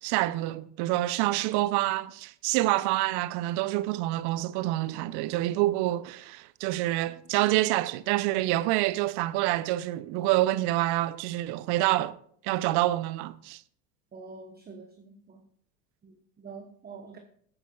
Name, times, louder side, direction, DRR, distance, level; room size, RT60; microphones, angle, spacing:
voice 1, 0.0-12.1 12.4-13.6, right 16 dB, 50° right, 0.7 m, -27 dB
voice 2, 14.1-15.4 16.0-17.2, right 4 dB, 20° right, 1.0 m, -46 dB
17.5 x 8.9 x 2.4 m
hypercardioid pair, 85°, 49 cm